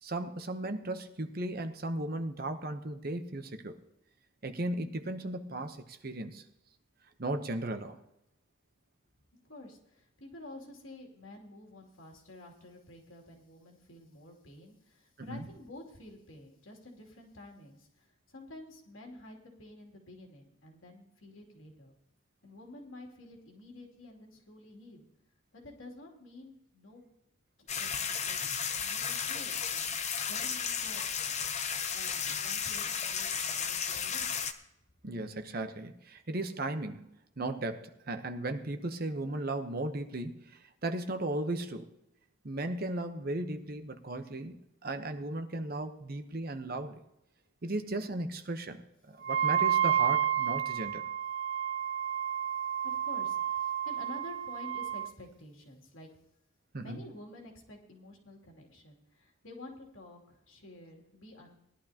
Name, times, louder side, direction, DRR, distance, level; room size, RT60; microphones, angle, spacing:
voice 1, 0.0-3.8 4.4-6.4 7.2-8.0 15.2-15.4 35.0-41.9 42.4-47.0 47.6-48.8 49.1-51.0 56.7-57.0, right 2 dB, 45° right, 7 dB, 0.9 m, -36 dB
voice 2, 9.5-21.9 22.4-25.1 25.5-27.0 27.6-28.4 28.8-29.8 30.2-31.0 31.9-34.4 52.8-56.1 56.7-61.5, left 1 dB, 85° left, 0 dB, 2.9 m, -50 dB
sound 1, 27.7-34.5, left 7 dB, 35° left, 0.7 m, -34 dB
Wind instrument woodwind instrument, 49.2-55.1, right 9 dB, 65° right, 0.6 m, -30 dB
19.0 x 11.5 x 2.9 m, 0.84 s
head